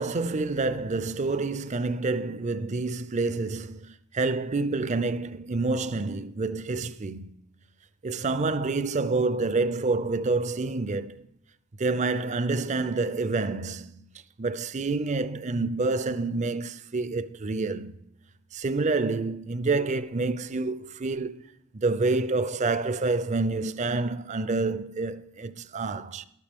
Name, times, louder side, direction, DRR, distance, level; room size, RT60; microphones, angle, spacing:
voice 1, 0.0-7.3 8.0-11.2 11.8-14.1 14.4-18.0 18.5-21.5 21.7-26.2, right 3 dB, 30° right, 0.5 m, -28 dB
13.0 x 12.5 x 3.6 m
head